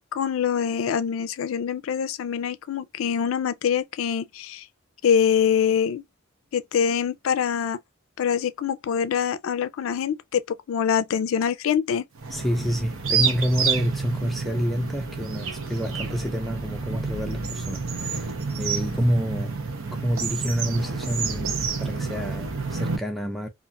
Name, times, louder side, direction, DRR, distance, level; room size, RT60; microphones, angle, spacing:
voice 1, 0.0-4.7 5.0-6.0 6.5-7.8 8.2-12.1, left 7 dB, 80° left, 0.3 m, -24 dB
sound 1, 12.2-23.0, right 5 dB, 90° right, 0.7 m, -29 dB
voice 2, 12.3-18.3 18.6-19.6 19.9-23.5, equal, ahead, 0.4 m, -28 dB
2.4 x 2.3 x 2.6 m
head